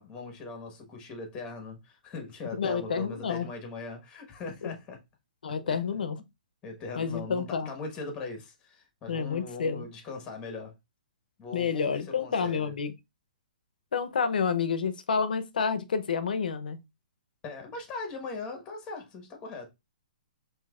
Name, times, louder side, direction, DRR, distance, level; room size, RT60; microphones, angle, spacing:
voice 1, 0.0-5.0 5.5-5.6 6.2-6.3 6.6-10.7 11.4-12.7 17.4-19.7, left 3 dB, 20° left, 1.2 m, -40 dB
voice 2, 2.5-3.5 4.6-4.7 5.4-6.2 7.0-7.7 9.1-9.8 11.5-12.9 13.9-16.8, left 6 dB, 80° left, 0.6 m, -29 dB
5.8 x 2.7 x 2.3 m
hypercardioid pair, 145°, 5 cm